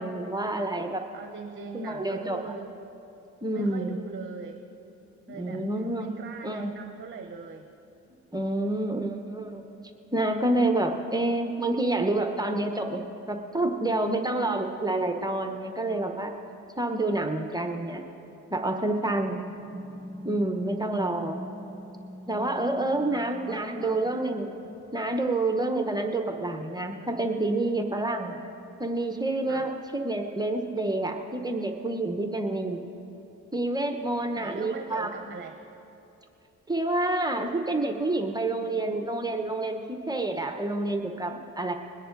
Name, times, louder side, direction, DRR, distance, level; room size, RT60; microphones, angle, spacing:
voice 1, 0.0-1.0 1.7-2.5 3.4-4.0 5.3-6.1 6.4-6.7 8.3-9.7 10.1-16.3 16.8-18.1 18.5-19.4 20.2-21.4 22.3-24.6 24.9-28.4 28.8-32.8 33.5-35.1 36.7-41.7, right 2 dB, 15° right, 4 dB, 0.9 m, -28 dB
voice 2, 1.1-2.7 3.5-4.6 5.3-5.6 6.0-7.7 23.1-24.0 29.5-29.7 34.4-35.6, right 5 dB, 40° right, 5 dB, 0.9 m, -41 dB
sound 1, 19.2-24.9, equal, 10° left, 2.5 m, -44 dB
22.0 x 9.9 x 3.9 m, 2.9 s
cardioid pair, 90°, 30 cm